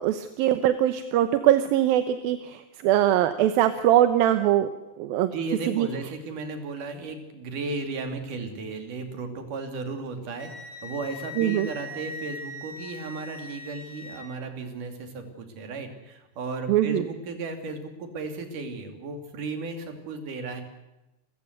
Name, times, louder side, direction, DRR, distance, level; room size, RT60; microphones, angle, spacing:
voice 1, 0.0-4.7 5.0-5.3 5.8-5.9 11.4-11.7 16.7-17.0, right 12 dB, 80° right, 10 dB, 2.7 m, -22 dB
voice 2, 5.3-20.6, right 3 dB, 60° right, 6 dB, 4.2 m, -35 dB
Wind instrument woodwind instrument, 10.4-14.2, left 2 dB, 45° left, 4.1 m, -40 dB
29.5 x 15.0 x 8.1 m, 0.97 s
omnidirectional pair, 4.2 m